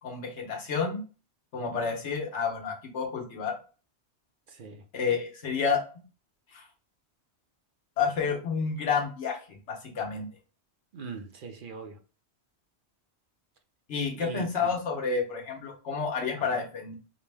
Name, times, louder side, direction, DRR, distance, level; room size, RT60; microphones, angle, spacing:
voice 1, 0.0-1.0 1.5-3.6 4.9-5.8 6.5-6.6 8.0-10.3 13.9-16.9, left 5 dB, 90° left, 1.3 m, -30 dB
voice 2, 4.5-4.8 10.9-12.0 14.1-14.8 16.3-16.6, right 5 dB, 55° right, 0.7 m, -41 dB
5.0 x 2.1 x 3.3 m
omnidirectional pair, 1.1 m